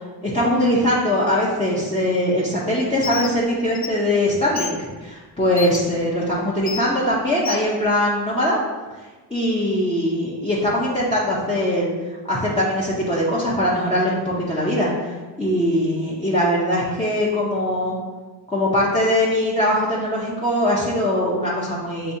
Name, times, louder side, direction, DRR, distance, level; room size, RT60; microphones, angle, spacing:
voice 1, 0.2-8.6 9.3-17.9 18.5-22.1, left 1 dB, 15° left, -7 dB, 0.8 m, -21 dB
Bird, 3.0-3.3 3.7-3.9 4.6-4.7 5.6-5.8 6.7-6.8 7.4-7.6, left 6 dB, 35° left, 0.4 m, -29 dB
6.6 x 2.7 x 2.7 m, 1.3 s
cardioid pair, 80°, 43 cm